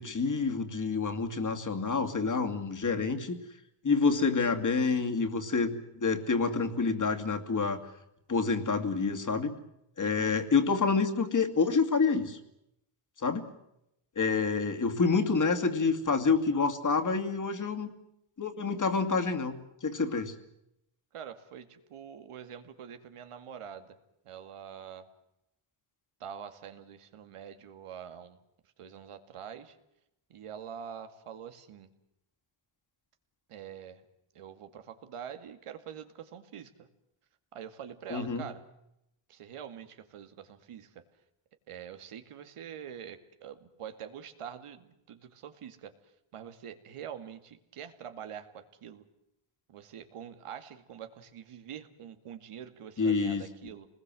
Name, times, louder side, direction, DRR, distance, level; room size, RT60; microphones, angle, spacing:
voice 1, 0.0-3.4 3.8-7.8 8.3-9.5 10.0-12.4 13.2-13.5 14.2-17.9 18.4-20.3 38.1-38.4 53.0-53.4, left 4 dB, 35° left, 6 dB, 2.5 m, -28 dB
voice 2, 10.0-10.4 21.1-24.0 24.2-25.1 26.2-28.4 28.8-29.8 30.3-31.9 33.5-34.0 34.3-36.9 37.5-38.6 39.3-41.0 41.7-45.9 46.3-49.0 49.7-53.9, right 8 dB, 85° right, 8 dB, 2.4 m, -45 dB
28.0 x 20.5 x 7.8 m, 0.83 s
wide cardioid pair, 130°, 50 cm